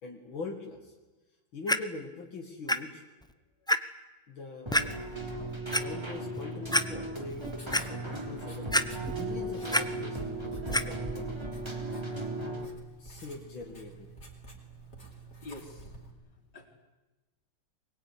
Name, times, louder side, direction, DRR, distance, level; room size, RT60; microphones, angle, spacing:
voice 1, 0.0-0.9 1.5-3.1 4.3-4.7 5.7-8.7 9.1-11.4 13.0-14.1, left 3 dB, 85° left, 0 dB, 3.2 m, -42 dB
Clock, 1.7-1.8 2.7-2.8 3.2-3.3 3.7-3.8 4.7-4.9 5.5-5.8 6.3-6.4 6.7-6.8 7.3-7.8 8.7-9.2 9.5-9.8 10.7-10.8 11.6-11.7, equal, 5° left, 0.4 m, -26 dB
Keyboard (musical), 4.7-12.7, right 1 dB, 15° right, 3.3 m, -36 dB
Writing, 7.1-16.1, right 4 dB, 35° left, 4.8 m, -50 dB
voice 2, 15.4-15.9 16.5-16.7, left 2 dB, 65° left, 3 dB, 4.6 m, -45 dB
23.5 x 21.5 x 9.9 m, 1.1 s
omnidirectional pair, 2.1 m